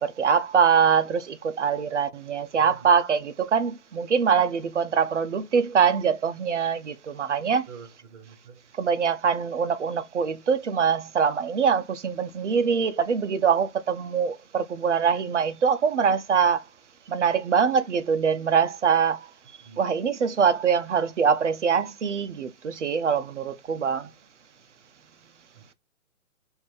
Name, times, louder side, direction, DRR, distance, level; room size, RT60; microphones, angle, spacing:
voice 1, 0.0-7.7 8.8-16.6 17.1-19.3 19.8-24.1, right 6 dB, 55° right, 0.6 m, -23 dB
voice 2, 2.5-2.9 7.7-8.6 19.6-19.8 25.5-25.7, right 6 dB, 25° right, 1.2 m, -46 dB
5.1 x 2.6 x 3.3 m
figure-of-eight pair, 140°, 43 cm